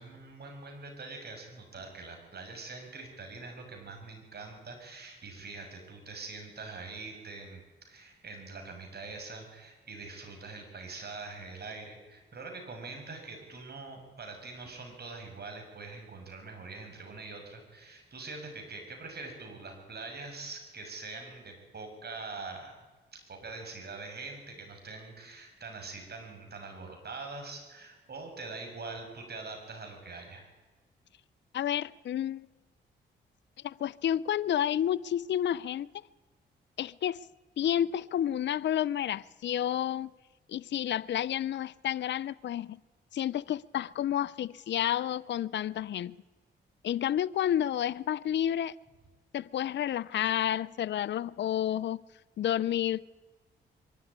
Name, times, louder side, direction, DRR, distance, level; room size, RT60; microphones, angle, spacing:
voice 1, 0.0-22.7 23.1-30.5, right 3 dB, 55° right, 6.7 m, -44 dB
voice 2, 31.5-32.5 33.6-35.9 36.8-37.2 37.6-40.1 40.5-42.8 43.1-46.2 46.8-48.8 49.3-52.0 52.4-53.1, left 10 dB, 65° left, 0.5 m, -30 dB
22.5 x 12.5 x 9.9 m
supercardioid pair, 55°, 20 cm